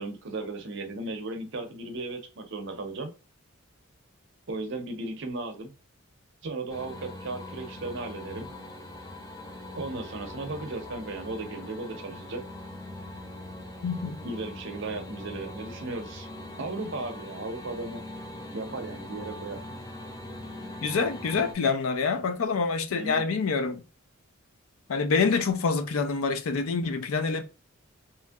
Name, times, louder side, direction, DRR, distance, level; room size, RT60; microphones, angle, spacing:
voice 1, 0.0-3.1 4.5-5.7 6.4-8.5 9.7-12.4 14.2-16.3 16.6-18.0 18.5-19.6 22.9-23.3, right 2 dB, 55° right, 0.6 m, -36 dB
sound 1, 6.7-21.5, left 1 dB, 15° left, 0.4 m, -42 dB
voice 2, 13.8-14.2 20.8-23.8 24.9-27.4, left 4 dB, 80° left, 0.4 m, -26 dB
3.0 x 2.6 x 2.3 m
head